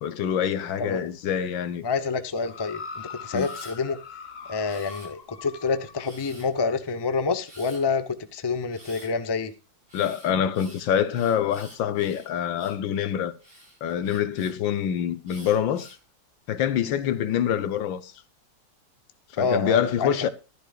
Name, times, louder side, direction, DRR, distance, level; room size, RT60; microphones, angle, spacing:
voice 1, 0.0-1.8 3.3-3.5 9.9-13.3 13.8-16.0 16.5-18.1 19.3-20.3, left 9 dB, 75° left, 1.7 m, -25 dB
voice 2, 1.8-4.0 4.5-9.5 19.4-20.3, left 4 dB, 20° left, 0.6 m, -27 dB
sound 1, 2.4-6.1 6.9-7.0, left 5 dB, 40° left, 1.1 m, -41 dB
Camera, 3.3-3.8 4.6-5.4 6.0-6.6 7.4-7.8 8.7-9.1 9.9-12.8 13.4-14.5 15.3-16.0 16.7-17.2, equal, 25° right, 6.6 m, -49 dB
15.0 x 11.5 x 2.4 m
omnidirectional pair, 2.1 m